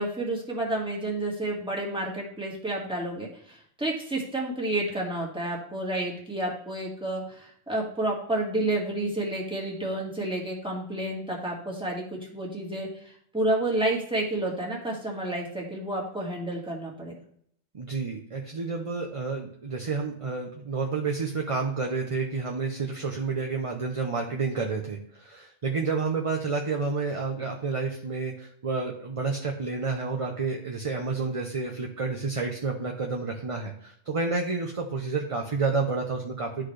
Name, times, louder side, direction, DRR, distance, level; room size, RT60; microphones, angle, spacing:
voice 1, 0.0-17.1, right 1 dB, 5° right, -3 dB, 1.7 m, -30 dB
voice 2, 17.7-36.7, right 4 dB, 35° right, 1 dB, 0.6 m, -30 dB
11.5 x 4.0 x 3.2 m, 0.66 s
omnidirectional pair, 1.3 m